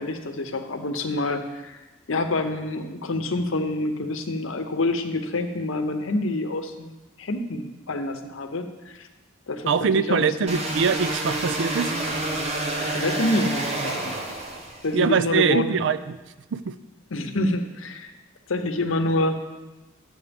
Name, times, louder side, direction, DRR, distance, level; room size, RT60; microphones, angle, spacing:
voice 1, 0.0-1.8 2.1-9.1 9.5-10.5 12.9-14.1 14.8-15.8 17.1-18.1 18.5-19.4, left 2 dB, 75° left, 6 dB, 0.8 m, -27 dB
voice 2, 9.7-11.9 14.9-16.2 16.5-16.7, right 6 dB, 60° right, 13 dB, 0.4 m, -23 dB
sound 1, 10.5-15.0, right 2 dB, 30° right, 1.0 m, -28 dB
12.0 x 7.8 x 3.5 m, 1.1 s
head